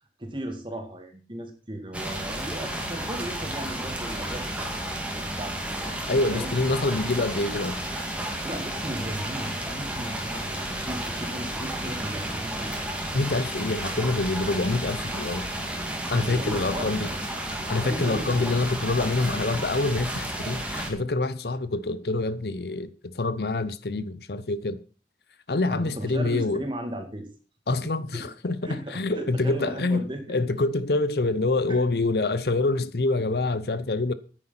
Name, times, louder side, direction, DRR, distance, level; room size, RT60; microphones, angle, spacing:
voice 1, 0.2-4.7 5.0-5.8 6.3-6.5 8.4-12.7 16.1-17.2 17.8-18.5 25.7-27.3 28.1-28.2 28.6-30.4 31.7-31.8, right 1 dB, 30° right, 2.4 m, -36 dB
sound 1, 1.9-20.9, right 1 dB, 5° right, 2.2 m, -32 dB
voice 2, 6.1-7.8 13.1-15.5 16.1-17.1 17.7-24.8 25.5-26.6 27.7-30.0 30.3-34.1, left 2 dB, 65° left, 0.8 m, -26 dB
9.8 x 9.3 x 6.0 m
head